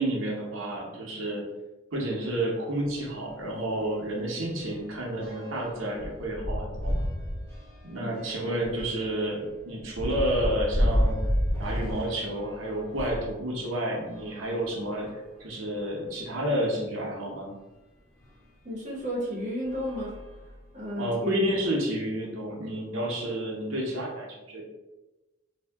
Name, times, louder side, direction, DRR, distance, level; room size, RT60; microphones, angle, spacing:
voice 1, 0.0-1.4 1.9-7.0 7.8-11.2 11.6-17.5 21.0-24.6, right 1 dB, 80° right, -2 dB, 0.7 m, -30 dB
sound 1, 2.9-3.0 3.4-3.6 3.8-13.3 14.0-15.4 16.1-16.2 16.4-16.5 18.2-18.3 18.9-19.2 19.6-20.9, equal, 15° left, 0.8 m, -32 dB
voice 2, 18.6-20.1 20.7-21.4, equal, 35° right, -4 dB, 0.7 m, -32 dB
2.7 x 2.1 x 3.3 m, 1.1 s
head